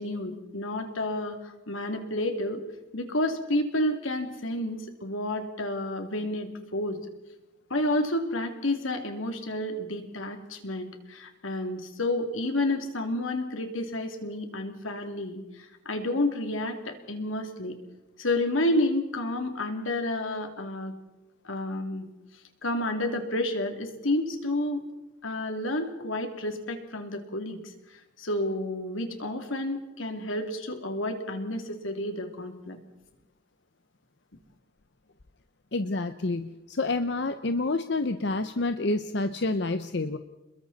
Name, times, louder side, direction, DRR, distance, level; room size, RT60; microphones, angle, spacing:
voice 1, 0.0-2.6 2.9-7.0 7.7-17.8 18.2-20.9 21.4-22.1 22.6-24.8 25.2-32.8, left 1 dB, 90° left, 5 dB, 2.8 m, -30 dB
voice 2, 35.7-40.2, left 2 dB, 60° left, 9 dB, 0.8 m, -28 dB
30.0 x 22.0 x 4.2 m, 1.0 s
head